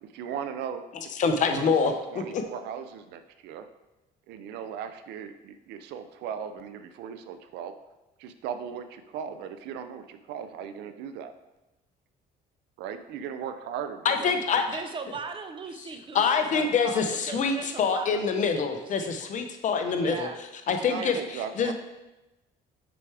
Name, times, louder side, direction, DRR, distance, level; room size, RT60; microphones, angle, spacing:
voice 1, 0.0-0.8 1.4-3.7 4.3-7.7 8.2-11.3 12.8-14.6 19.2-19.3 19.8-20.1 20.9-21.7, right 8 dB, 85° right, 9 dB, 0.5 m, -38 dB
voice 2, 1.2-1.9 2.3-2.4 14.0-14.8 16.1-20.3 20.7-21.7, left 5 dB, 45° left, 6 dB, 0.7 m, -25 dB
voice 3, 14.7-19.1 20.0-20.4 20.9-21.2 21.6-21.7, right 5 dB, 30° right, 7 dB, 0.6 m, -39 dB
6.0 x 4.6 x 3.4 m, 1.0 s
cardioid pair, 110°, 17 cm